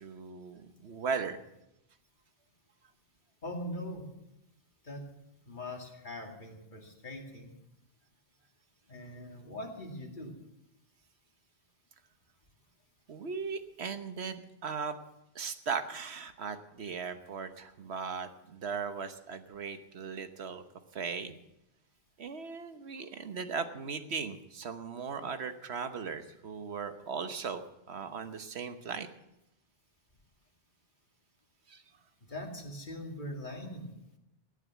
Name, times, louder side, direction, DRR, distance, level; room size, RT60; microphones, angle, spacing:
voice 1, 0.0-1.4 13.1-15.0 15.3-20.6 20.9-21.4 22.2-27.6 27.9-29.1 31.7-31.8, right 5 dB, 75° right, 9 dB, 1.3 m, -38 dB
voice 2, 3.4-4.1 4.8-5.0 5.5-7.5 8.9-10.3 32.3-33.9, left 1 dB, 45° left, 1 dB, 2.4 m, -41 dB
17.0 x 9.0 x 7.2 m, 0.87 s
omnidirectional pair, 1.1 m